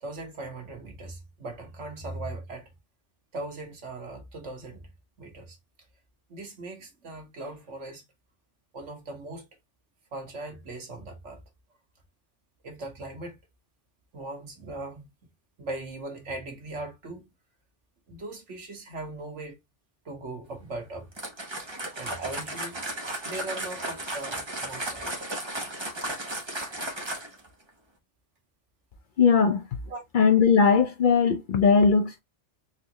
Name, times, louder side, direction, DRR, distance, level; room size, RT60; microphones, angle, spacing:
voice 1, 0.0-2.7 3.3-4.9 5.2-5.6 6.3-8.0 8.7-9.4 10.1-11.4 12.6-13.4 14.1-15.1 15.6-17.3 18.1-19.6 20.0-21.1 21.6-21.7 22.0-22.7 23.2-25.3 26.6-26.7 29.9-30.0, right 2 dB, 80° right, 1.6 m, -39 dB
sound 1, 21.1-27.5, right 1 dB, 25° right, 1.0 m, -34 dB
voice 2, 29.2-29.6 30.1-32.2, left 5 dB, 55° left, 0.6 m, -19 dB
4.1 x 2.6 x 2.8 m
omnidirectional pair, 1.2 m